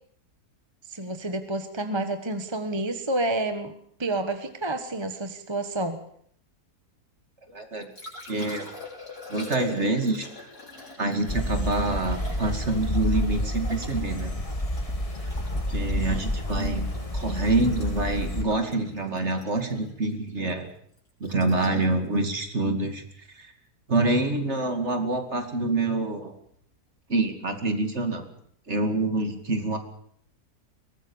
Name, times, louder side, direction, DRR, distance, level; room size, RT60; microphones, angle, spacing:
voice 1, 0.9-3.7 4.0-6.0, right 2 dB, 20° right, 8 dB, 1.3 m, -29 dB
Liquid, 7.5-23.6 26.5-26.6, left 3 dB, 65° left, 6.7 m, -45 dB
voice 2, 7.5-7.9 8.3-8.7 9.3-10.3 11.0-14.3 15.7-20.7 21.2-23.0 23.4-23.5 23.9-26.3 27.1-28.3 28.7-29.8, right 2 dB, 40° right, 6 dB, 2.7 m, -26 dB
sound 1, 11.3-18.4, left 1 dB, 20° left, 2.1 m, -29 dB
sound 2, 13.4-13.5 13.8-14.0 14.4-14.5 14.9-15.1 15.4-15.5 15.9-16.0 16.4-16.5 16.9-17.0 17.4-17.5 17.9-18.0 18.4-18.5 18.9-19.1 19.4-19.5, left 1 dB, 50° left, 4.1 m, -45 dB
22.5 x 19.0 x 7.2 m, 0.65 s
omnidirectional pair, 1.7 m